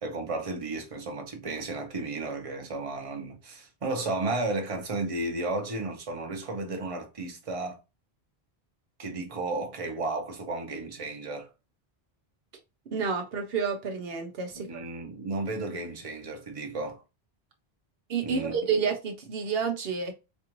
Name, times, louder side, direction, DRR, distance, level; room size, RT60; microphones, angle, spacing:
voice 1, 0.0-7.8 9.0-11.5 14.5-17.0 18.2-18.5, right 2 dB, 35° right, 0.9 m, -33 dB
voice 2, 12.9-14.8 18.1-20.1, right 5 dB, 75° right, 0.9 m, -29 dB
4.4 x 2.5 x 3.0 m
omnidirectional pair, 1.0 m